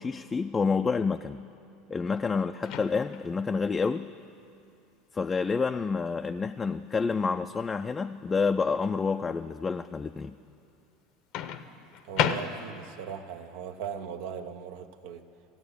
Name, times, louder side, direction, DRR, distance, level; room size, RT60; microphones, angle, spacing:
voice 1, 0.0-1.4 1.9-4.1 5.1-10.3, left 5 dB, 25° left, 7 dB, 0.3 m, -28 dB
Microwave oven, 2.6-3.3 5.3-5.5 11.3-13.0, left 9 dB, 60° left, 0.7 m, -32 dB
voice 2, 12.0-15.2, right 7 dB, 70° right, 8 dB, 0.7 m, -39 dB
14.5 x 8.6 x 8.2 m, 2.6 s
hypercardioid pair, 85°, 0 cm